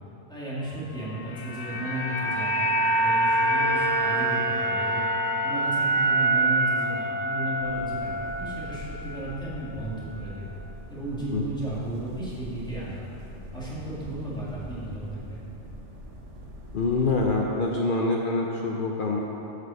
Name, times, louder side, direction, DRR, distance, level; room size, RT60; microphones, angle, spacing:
voice 1, 0.3-5.0 5.4-10.6 10.9-13.2 13.5-15.5, right 1 dB, 5° left, -9 dB, 2.0 m, -34 dB
sound 1, 1.1-9.4 9.6-9.8, right 2 dB, 90° left, 1.1 m, -26 dB
sound 2, 7.6-17.3, equal, 70° right, 1.4 m, -42 dB
voice 2, 16.7-19.2, left 3 dB, 55° left, -1 dB, 0.7 m, -25 dB
8.0 x 5.3 x 6.4 m, 2.9 s
omnidirectional pair, 1.3 m